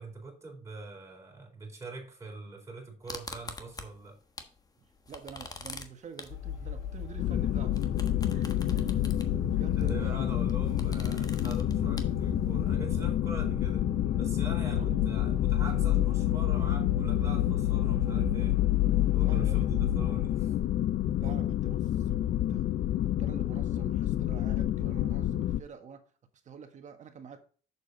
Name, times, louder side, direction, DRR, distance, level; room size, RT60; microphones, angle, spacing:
voice 1, 0.0-4.2 9.6-13.9 14.2-18.6 19.1-20.5 21.2-21.3, right 3 dB, 15° right, -1 dB, 4.2 m, -44 dB
sound 1, 3.1-4.6 4.9-12.7, left 3 dB, 20° left, 1.3 m, -45 dB
voice 2, 4.8-9.0 9.5-10.6 14.7-15.0 19.1-19.7 21.2-26.0 26.4-27.4, right 7 dB, 45° right, 7 dB, 1.5 m, -47 dB
sound 2, 6.3-20.6, left 10 dB, 75° left, 1.3 m, -32 dB
sound 3, 7.2-25.6, left 12 dB, 60° left, 0.5 m, -29 dB
7.2 x 6.6 x 4.0 m, 0.41 s
cardioid pair, 110°, 17 cm